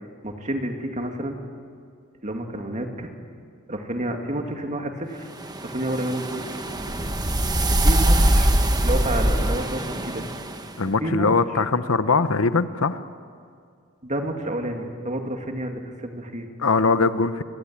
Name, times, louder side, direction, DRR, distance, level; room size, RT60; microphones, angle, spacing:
voice 1, 0.2-1.4 2.2-3.1 3.7-5.3 5.6-6.5 7.7-8.5 8.8-10.3 10.8-11.3 14.0-16.5, right 1 dB, 35° right, 3 dB, 2.5 m, -29 dB
sound 1, 5.4-10.7, right 1 dB, 20° right, 1.3 m, -22 dB
voice 2, 10.8-13.0 16.6-17.4, left 4 dB, 75° left, 12 dB, 1.0 m, -21 dB
27.0 x 21.0 x 8.9 m, 2.3 s
head